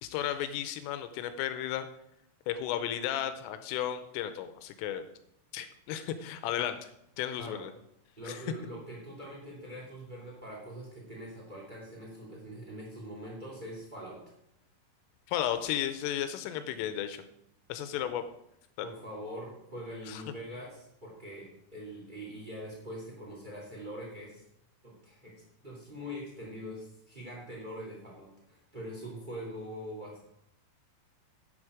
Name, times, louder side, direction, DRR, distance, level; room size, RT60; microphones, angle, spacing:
voice 1, 0.0-1.9 2.5-5.0 5.5-6.9 7.2-7.7 8.3-8.4 15.3-17.2 17.7-18.2 18.8-18.9 20.1-20.2, left 11 dB, 85° left, 10 dB, 3.2 m, -34 dB
voice 2, 8.2-14.2 18.0-18.2 18.8-24.4 24.8-30.2, equal, 70° right, -3 dB, 0.4 m, -43 dB
11.0 x 8.1 x 4.9 m, 0.78 s
omnidirectional pair, 5.8 m